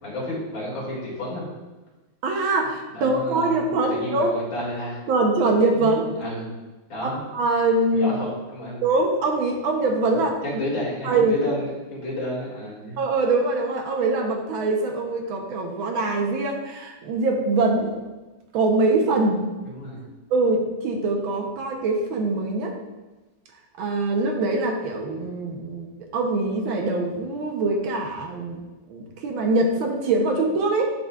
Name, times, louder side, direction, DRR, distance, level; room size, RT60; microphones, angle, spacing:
voice 1, 0.0-1.5 2.9-5.0 5.7-6.5 6.9-7.2 7.9-8.8 10.4-13.0 19.6-20.0, left 1 dB, 65° left, -5 dB, 2.9 m, -31 dB
voice 2, 2.2-4.4 5.1-6.0 7.0-8.2 8.8-10.4 11.0-11.4 13.0-18.1 18.5-19.6 20.0-20.1 20.3-22.7 23.7-28.6 28.9-30.8, right 2 dB, 70° right, 2 dB, 1.6 m, -23 dB
10.0 x 5.5 x 2.4 m, 1.1 s
omnidirectional pair, 2.3 m